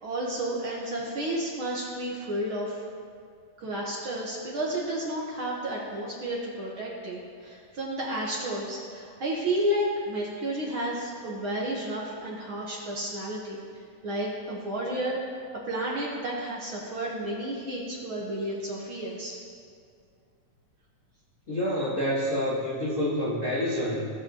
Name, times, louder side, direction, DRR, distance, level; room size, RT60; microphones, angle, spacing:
voice 1, 0.0-2.9 3.6-15.2 15.7-19.4, right 1 dB, 60° right, -3 dB, 1.4 m, -32 dB
voice 2, 21.5-24.0, equal, 85° left, -6 dB, 0.6 m, -27 dB
18.5 x 7.1 x 2.9 m, 2.2 s
omnidirectional pair, 3.7 m